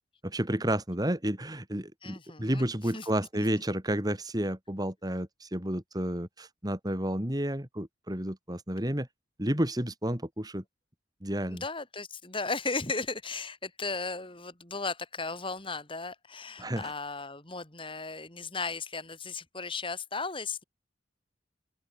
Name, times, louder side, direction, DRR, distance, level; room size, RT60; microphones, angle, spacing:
voice 1, 0.2-9.1 9.4-10.6 11.2-11.6 16.6-16.9, right 1 dB, 20° right, 3.3 m, -31 dB
voice 2, 2.0-3.5 11.5-20.6, left 4 dB, 30° left, 7.1 m, -36 dB
open air
head